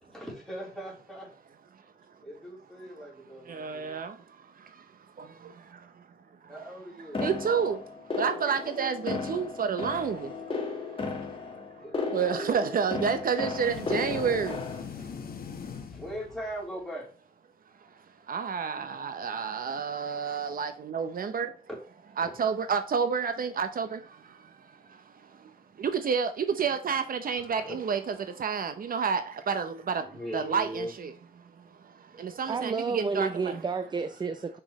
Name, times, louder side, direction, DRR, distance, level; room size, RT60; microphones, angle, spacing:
voice 1, 0.0-1.3 2.2-3.9 6.5-7.3 11.8-13.1 14.5-14.6 15.9-17.1 21.7-21.8 22.2-22.3 27.6-27.8 30.1-30.9, equal, 5° left, 3.8 m, -40 dB
voice 2, 3.5-4.9 5.2-6.0 6.4-6.5 7.0-7.8 8.1-11.1 11.3-11.4 12.1-15.1 17.8-17.9 18.3-21.5 22.2-31.1 31.4-33.6, right 6 dB, 60° right, 0.7 m, -31 dB
sound 1, 7.1-14.8, left 4 dB, 35° left, 1.7 m, -35 dB
sound 2, 13.5-16.7, left 6 dB, 70° left, 1.2 m, -41 dB
voice 3, 32.1-34.6, right 4 dB, 25° right, 0.5 m, -31 dB
6.4 x 6.1 x 3.1 m
wide cardioid pair, 135°, 16 cm